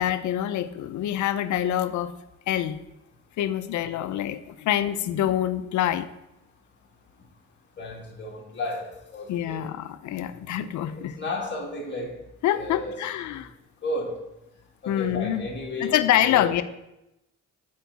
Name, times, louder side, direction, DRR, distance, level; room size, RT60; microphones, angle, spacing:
voice 1, 0.0-2.1 2.5-2.8 3.4-6.1 9.3-11.2 12.4-13.5 14.9-15.5 15.8-16.6, left 11 dB, 75° left, 0.5 m, -26 dB
voice 2, 7.8-9.6 10.8-12.1 12.5-13.0 13.8-14.2 14.8-15.9 16.2-16.5, left 1 dB, 35° left, 2.2 m, -33 dB
8.9 x 4.7 x 4.0 m
cardioid pair, 90°, 30 cm